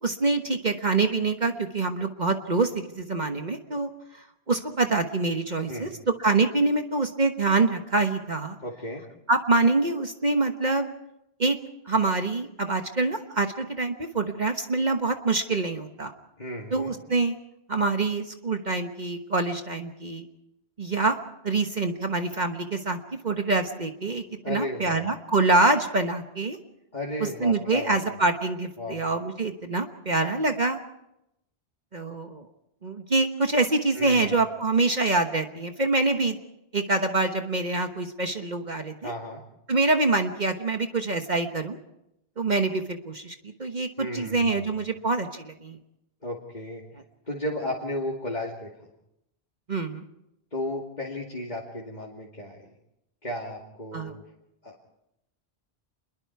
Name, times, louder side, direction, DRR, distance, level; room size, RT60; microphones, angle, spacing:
voice 1, 0.0-8.6 9.3-10.9 11.4-11.6 11.9-16.1 16.7-17.4 17.7-20.2 20.8-21.2 21.4-23.0 23.2-26.6 27.2-30.8 31.9-32.4 32.8-36.4 36.7-39.1 39.7-41.8 42.4-45.8 49.7-50.0 53.9-54.1, right 3 dB, 45° right, 6 dB, 1.4 m, -25 dB
voice 2, 8.6-9.0 16.4-16.9 24.4-25.0 26.9-28.0 28.8-29.0 33.9-34.4 39.0-39.4 44.0-44.9 46.2-46.8 47.3-48.9 50.5-52.7 53.2-54.2 54.6-55.0, left 1 dB, 45° left, -3 dB, 2.6 m, -34 dB
27.5 x 22.0 x 4.7 m, 0.83 s
omnidirectional pair, 1.1 m